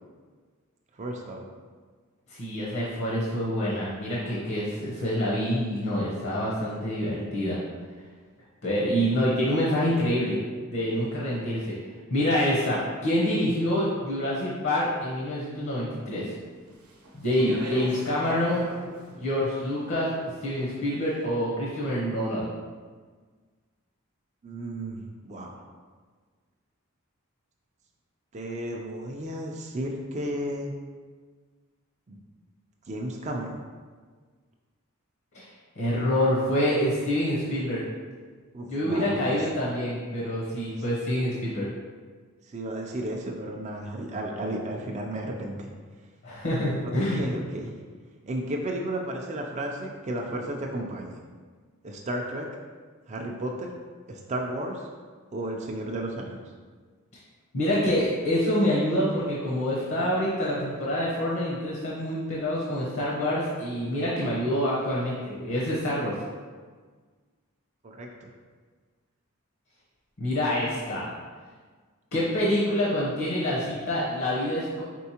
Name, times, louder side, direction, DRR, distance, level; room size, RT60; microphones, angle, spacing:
voice 1, 0.9-1.4 24.4-25.6 28.3-30.7 32.1-32.2 32.9-33.6 38.5-39.4 42.5-45.7 46.8-47.7 48.2-51.1 51.8-52.5 53.1-53.7 54.1-54.8 55.3-56.4 67.8-68.3, right 1 dB, 30° right, 0 dB, 0.4 m, -33 dB
voice 2, 2.3-7.6 8.6-10.4 10.7-11.8 12.1-16.3 17.1-18.6 19.2-20.1 20.4-22.5 35.3-35.4 35.8-37.8 38.7-41.7 46.2-47.2 57.5-66.1 70.2-71.1 72.1-74.8, equal, 50° left, -5 dB, 0.8 m, -26 dB
Speech, 16.7-21.0, right 1 dB, 85° right, 0.7 m, -42 dB
4.5 x 4.1 x 2.8 m, 1.5 s
head